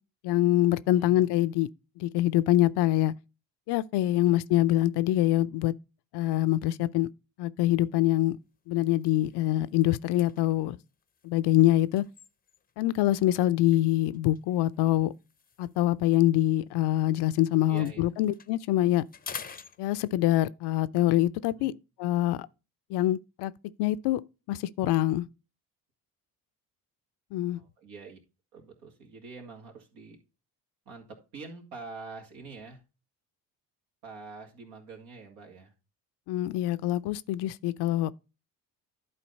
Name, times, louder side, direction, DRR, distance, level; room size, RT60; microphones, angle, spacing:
voice 1, 0.2-1.7 2.0-3.1 3.7-5.7 6.1-7.1 7.4-8.4 8.7-10.8 11.2-12.0 12.8-15.1 15.6-19.0 19.8-21.7 22.0-22.4 22.9-23.5 23.8-24.2 24.5-25.3 27.3-27.6 36.3-38.1, left 14 dB, 60° left, 0.5 m, -25 dB
voice 2, 0.9-1.3 4.3-4.4 17.7-18.1 21.5-21.7 27.5-28.2 28.5-30.2 30.9-32.8 34.0-35.7, right 4 dB, 80° right, 2.1 m, -45 dB
sound 1, 8.4-8.6 8.9-12.9 13.7-17.3 17.6-20.4, left 6 dB, 20° left, 0.6 m, -48 dB
11.0 x 4.2 x 4.1 m
hypercardioid pair, 55°, 48 cm